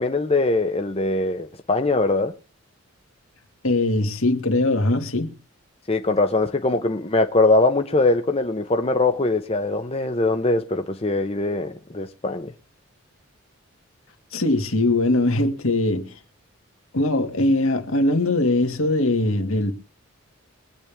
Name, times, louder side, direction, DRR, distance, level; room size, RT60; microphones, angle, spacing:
voice 1, 0.0-2.3 5.9-12.5, left 2 dB, 25° left, 0.8 m, -22 dB
voice 2, 3.6-5.3 14.3-16.2 16.9-19.7, left 2 dB, 70° left, 2.2 m, -21 dB
23.0 x 8.8 x 3.5 m
head